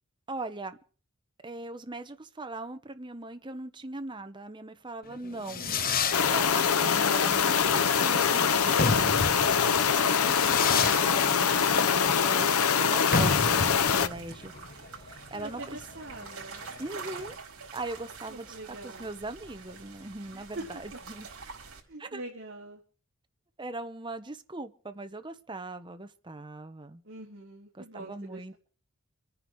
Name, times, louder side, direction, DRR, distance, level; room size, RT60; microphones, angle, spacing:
voice 1, 0.3-0.8 1.4-5.7 6.3-14.5 14.9-15.8 16.8-17.4 17.7-18.6 18.8-21.3 22.0-22.2 23.6-27.0 27.7-28.5, right 2 dB, 20° right, 9 dB, 1.1 m, -40 dB
Fireworks, 5.1-17.3, left 4 dB, 40° left, 1.0 m, -32 dB
voice 2, 5.6-6.0 15.3-16.6 18.3-19.1 20.3-20.7 21.9-22.8 27.0-28.5, right 2 dB, 50° right, -4 dB, 3.8 m, -44 dB
sound 1, 5.7-21.8, right 4 dB, 70° right, 5.0 m, -47 dB
sound 2, 6.1-14.1, left 7 dB, 85° left, 0.7 m, -24 dB
26.0 x 9.9 x 4.7 m, 0.40 s
head